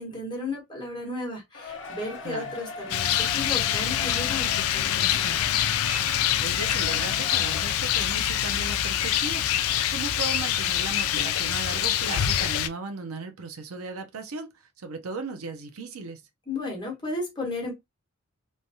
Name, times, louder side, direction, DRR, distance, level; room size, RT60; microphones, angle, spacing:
voice 1, 0.0-5.4 16.5-17.7, left 2 dB, 20° left, 1.2 m, -34 dB
Cheering, 1.5-9.3 9.7-9.8 10.5-10.6, left 3 dB, 55° left, 0.7 m, -41 dB
voice 2, 2.2-2.5 6.4-14.5 14.8-16.2, right 3 dB, 80° right, 0.6 m, -36 dB
Rain, 2.9-12.7, left 10 dB, 80° left, 0.4 m, -25 dB
3.2 x 2.2 x 2.6 m
head